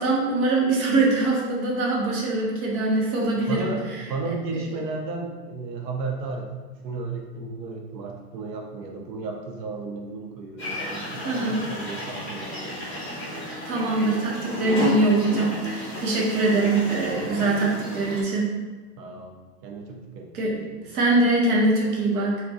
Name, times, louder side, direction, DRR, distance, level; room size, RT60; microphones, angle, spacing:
voice 1, 0.0-4.8 11.2-12.0 13.6-18.5 20.3-22.4, right 2 dB, 60° right, -3 dB, 0.9 m, -23 dB
voice 2, 3.5-6.5 6.8-12.7 17.2-17.8 19.0-19.3 19.6-20.6, right 3 dB, 85° right, 1 dB, 0.8 m, -34 dB
sound 1, 10.6-18.2, left 1 dB, 5° left, 0.5 m, -32 dB
3.6 x 2.3 x 2.6 m, 1.3 s
supercardioid pair, 165°, 49 cm